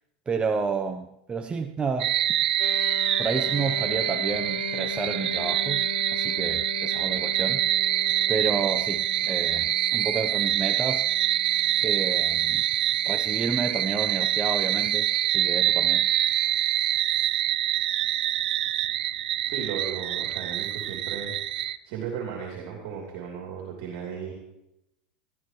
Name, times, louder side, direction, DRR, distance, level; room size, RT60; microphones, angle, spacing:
voice 1, 0.3-2.2 3.2-5.9 6.1-7.6 8.3-11.1 11.8-12.6 13.0-16.1, right 5 dB, 20° right, 7 dB, 0.8 m, -30 dB
sound 1, 2.0-21.8, right 12 dB, 75° right, 0.5 m, -25 dB
sound 2, 2.6-14.1, left 9 dB, 75° left, 0.9 m, -39 dB
voice 2, 19.5-21.3 21.8-24.3, right 7 dB, 60° right, -1 dB, 3.2 m, -35 dB
16.5 x 13.0 x 3.2 m, 0.85 s
hypercardioid pair, 95°, 5 cm